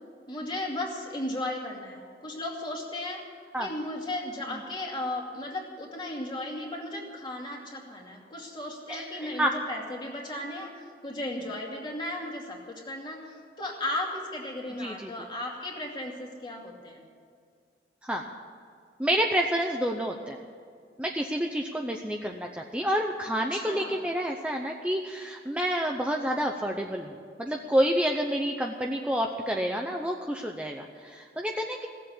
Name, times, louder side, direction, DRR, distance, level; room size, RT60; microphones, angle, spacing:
voice 1, 0.3-3.2 3.6-17.0 23.5-24.0, left 1 dB, 25° left, -1 dB, 2.5 m, -35 dB
voice 2, 8.9-9.5 14.8-15.1 18.0-18.3 19.0-20.4 21.0-31.9, equal, 5° right, 1 dB, 0.7 m, -29 dB
17.0 x 7.7 x 9.8 m, 2.2 s
head